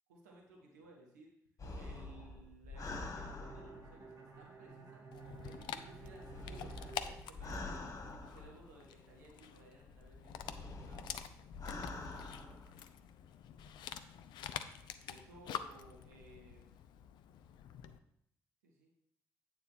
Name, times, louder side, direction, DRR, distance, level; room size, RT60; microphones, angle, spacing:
voice 1, 0.1-1.3 1.7-5.0 5.4-7.6 8.0-11.1 15.0-16.7 18.6-18.9, right 2 dB, 75° right, -1 dB, 1.3 m, -59 dB
sound 1, 1.6-4.1 5.4-9.0 9.9-12.8 13.5-13.9, left 2 dB, 35° left, 1.6 m, -46 dB
Bowed string instrument, 3.1-7.9, right 5 dB, 40° right, 2.5 m, -54 dB
Dog, 5.1-18.0, left 9 dB, 60° left, 0.5 m, -48 dB
8.8 x 3.9 x 6.3 m, 0.73 s
figure-of-eight pair, 40°, 9 cm